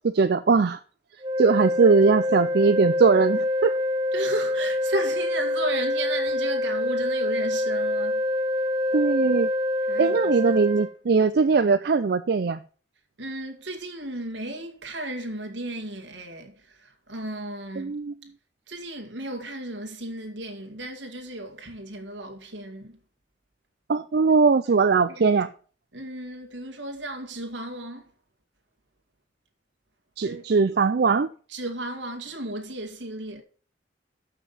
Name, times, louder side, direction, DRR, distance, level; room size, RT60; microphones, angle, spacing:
voice 1, 0.0-0.8 1.4-3.7 8.9-9.5 10.0-12.6 17.8-18.2 23.9-25.5 30.2-31.3, right 4 dB, 60° right, 0.4 m, -20 dB
sound 1, 1.2-10.9, left 1 dB, 25° right, 0.8 m, -26 dB
voice 2, 4.1-8.2 9.9-10.2 10.5-10.6 13.2-17.9 18.7-23.0 25.1-25.3 25.9-28.1 30.2-30.4 31.5-33.4, right 1 dB, 80° right, 2.0 m, -34 dB
7.5 x 5.9 x 6.8 m
head